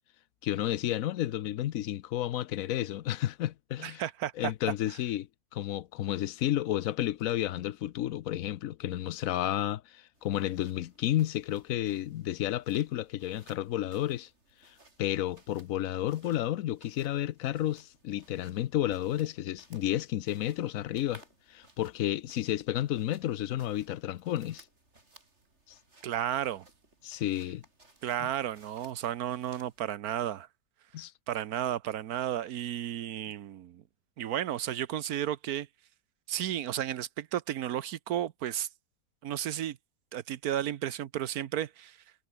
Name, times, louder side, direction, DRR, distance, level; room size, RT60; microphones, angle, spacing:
voice 1, 0.4-4.0 4.4-5.3 5.5-14.3 14.6-21.2 21.5-24.6 27.0-27.6 28.2-28.3 30.9-31.1, left 13 dB, 70° left, 1.1 m, -31 dB
voice 2, 3.8-4.5 26.0-26.6 28.0-30.5 31.3-33.8 34.2-35.7 36.3-38.7 39.2-39.8 40.1-42.0, right 11 dB, 80° right, 1.3 m, -33 dB
sound 1, 10.1-29.9, right 2 dB, 50° right, 4.7 m, -61 dB
omnidirectional pair, 1.6 m